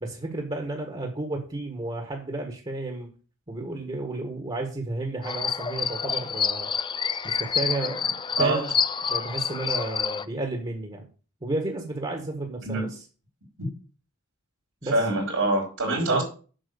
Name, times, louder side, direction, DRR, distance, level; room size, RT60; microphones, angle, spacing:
voice 1, 0.0-3.1 3.5-6.7 7.2-8.7 9.1-11.1 11.4-13.0 14.8-15.0 16.1-16.2, right 2 dB, 25° right, 2 dB, 1.5 m, -32 dB
sound 1, 5.2-10.2, left 6 dB, 20° left, 0.4 m, -28 dB
voice 2, 14.9-16.2, right 2 dB, 75° right, -3 dB, 4.0 m, -24 dB
7.8 x 6.2 x 6.9 m, 0.38 s
head